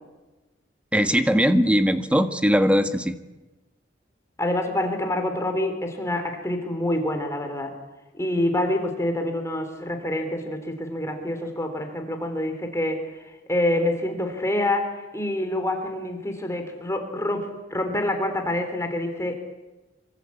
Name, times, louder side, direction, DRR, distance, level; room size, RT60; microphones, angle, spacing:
voice 1, 0.9-3.2, equal, 5° right, 8 dB, 1.8 m, -20 dB
voice 2, 4.4-7.8 8.2-19.4, left 1 dB, 15° left, 6 dB, 3.7 m, -27 dB
26.0 x 25.5 x 8.6 m, 1.1 s
head